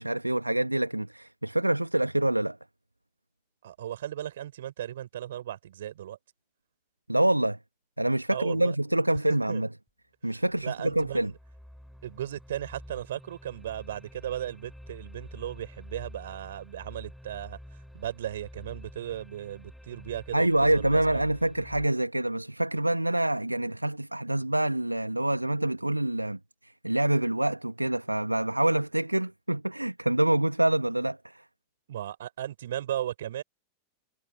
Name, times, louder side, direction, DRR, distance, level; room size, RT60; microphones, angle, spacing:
voice 1, 0.0-2.6 7.1-7.6 8.0-9.7 10.2-11.3 20.3-31.4, right 1 dB, 85° right, 1.8 m, -26 dB
voice 2, 3.6-6.2 8.3-8.7 9.5-9.6 10.3-11.4 12.0-17.6 17.9-21.2 31.9-33.4, right 11 dB, 60° right, 6.5 m, -36 dB
sound 1, 9.9-10.0 10.5-21.9, equal, ahead, 4.5 m, -48 dB
figure-of-eight pair, 90°, 0 cm